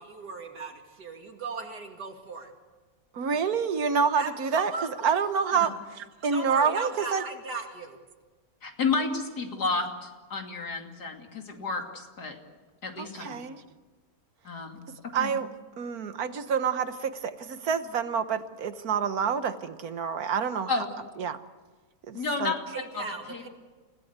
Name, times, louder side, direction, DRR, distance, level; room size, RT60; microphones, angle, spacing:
voice 1, 0.0-2.5 4.1-4.9 5.5-5.7 6.3-8.0 22.7-23.5, right 4 dB, 85° right, 3 dB, 3.3 m, -37 dB
voice 2, 3.1-7.2 13.0-13.6 14.9-15.5 15.8-20.8 21.2-21.4 22.1-22.5, right 6 dB, 65° right, 10 dB, 1.6 m, -28 dB
voice 3, 8.6-12.4 12.8-13.4 14.4-14.8 15.2-15.3 20.7-20.9 22.1-22.6 22.9-23.0 23.3-23.5, left 4 dB, 80° left, 3 dB, 3.3 m, -31 dB
29.0 x 17.0 x 8.2 m, 1.4 s
omnidirectional pair, 1.7 m